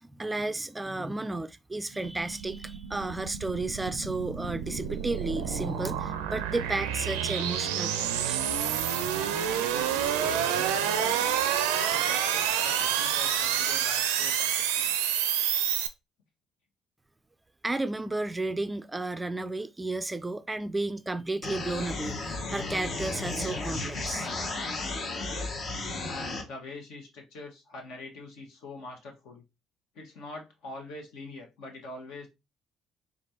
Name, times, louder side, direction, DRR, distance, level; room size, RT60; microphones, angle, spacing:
voice 1, 0.0-8.4 17.6-24.3, right 2 dB, 15° right, 0.4 m, -33 dB
sound 1, 1.9-15.9, right 9 dB, 80° right, 0.4 m, -29 dB
voice 2, 9.2-11.4 11.8-14.9 25.2-25.7 26.0-29.4 29.9-32.3, left 2 dB, 70° left, 1.3 m, -44 dB
sound 2, 21.4-26.4, left 2 dB, 55° left, 1.1 m, -34 dB
3.9 x 3.4 x 2.8 m
hypercardioid pair, 55°, 0 cm